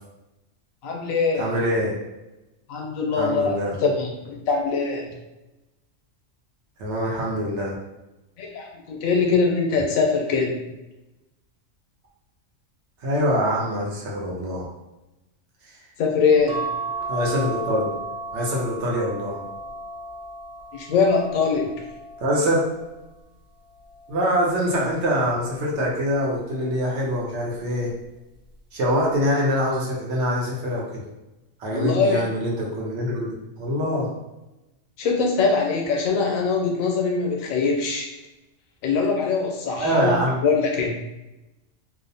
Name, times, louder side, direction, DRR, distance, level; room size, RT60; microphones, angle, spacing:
voice 1, 0.8-1.5 2.7-5.1 8.4-10.6 16.0-16.7 20.7-21.7 31.7-32.2 35.0-38.1 38.8-41.0, left 4 dB, 85° left, 0 dB, 1.0 m, -22 dB
voice 2, 1.4-1.9 3.2-3.8 6.8-7.7 13.0-14.7 17.1-17.9 18.3-19.4 22.2-22.6 24.1-27.9 28.7-31.0 31.6-34.1 39.8-40.4, equal, 65° right, -3 dB, 0.9 m, -24 dB
sound 1, 16.5-23.1 23.7-25.1 26.4-26.8 27.1-27.2, right 3 dB, 85° right, 1.0 m, -35 dB
2.6 x 2.0 x 2.6 m, 0.99 s
omnidirectional pair, 1.4 m